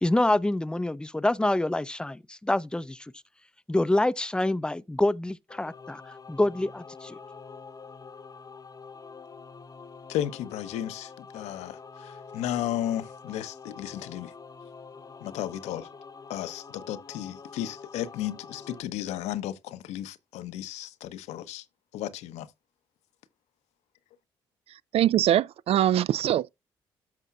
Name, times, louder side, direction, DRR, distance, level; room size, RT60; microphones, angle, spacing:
voice 1, 0.0-3.1 3.7-7.2, left 1 dB, 5° left, 0.5 m, -26 dB
Singing / Musical instrument, 5.5-18.8, left 5 dB, 30° left, 0.8 m, -46 dB
voice 2, 10.1-14.3 15.2-15.9 16.3-21.6 21.9-22.5, left 12 dB, 70° left, 0.7 m, -34 dB
voice 3, 24.9-26.5, right 12 dB, 55° right, 0.4 m, -22 dB
13.0 x 5.3 x 2.3 m
hypercardioid pair, 40°, 12 cm